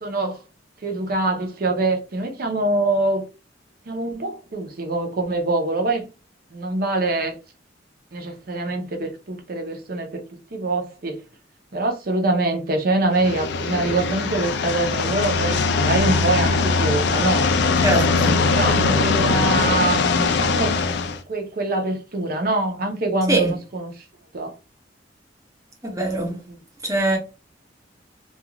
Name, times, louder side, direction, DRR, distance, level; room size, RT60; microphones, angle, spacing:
voice 1, 0.0-0.4 0.8-3.2 3.9-6.1 6.5-7.4 8.1-10.2 10.5-11.2 11.7-17.4 18.5-20.8 21.3-24.0 24.3-24.5 26.3-26.6, right 2 dB, 55° right, 0.6 m, -24 dB
sound 1, 13.1-21.2, left 4 dB, 65° left, 0.4 m, -21 dB
voice 2, 17.8-18.4 23.3-23.5 25.8-26.4 26.8-27.2, right 2 dB, 20° right, 0.7 m, -22 dB
2.4 x 2.3 x 2.8 m
head